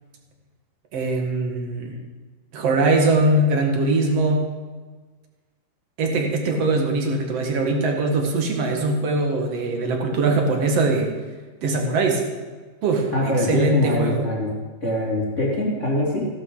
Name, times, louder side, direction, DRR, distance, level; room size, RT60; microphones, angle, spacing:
voice 1, 0.9-2.0 2.5-4.4 6.0-11.1 11.6-12.2 12.8-14.2, right 2 dB, 50° right, 2 dB, 2.2 m, -21 dB
voice 2, 13.1-14.5 14.8-16.3, left 1 dB, 20° left, -5 dB, 2.4 m, -23 dB
15.5 x 12.5 x 3.9 m, 1.4 s
omnidirectional pair, 4.2 m